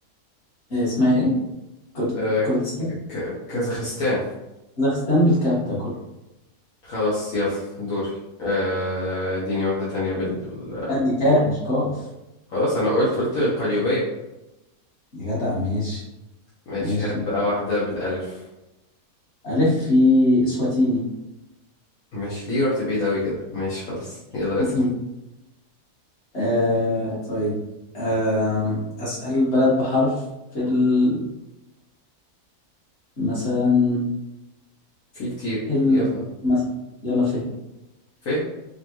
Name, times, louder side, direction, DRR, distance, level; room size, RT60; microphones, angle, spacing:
voice 1, 0.7-1.3 1.9-2.2 2.4-2.7 4.8-5.8 10.9-11.9 15.1-16.0 16.8-17.2 19.4-21.0 24.6-24.9 26.3-27.6 27.9-30.1 30.5-31.2 33.2-34.0 35.6-36.1 36.4-36.6 37.0-37.4, left 2 dB, 50° left, -8 dB, 1.8 m, -21 dB
voice 2, 2.1-2.4 3.1-4.2 6.8-11.0 12.5-14.0 16.7-18.4 22.1-24.7 35.1-35.6 35.9-36.2 38.2-38.4, left 1 dB, 70° left, -9 dB, 1.5 m, -25 dB
4.7 x 2.4 x 3.0 m, 0.96 s
omnidirectional pair, 1.6 m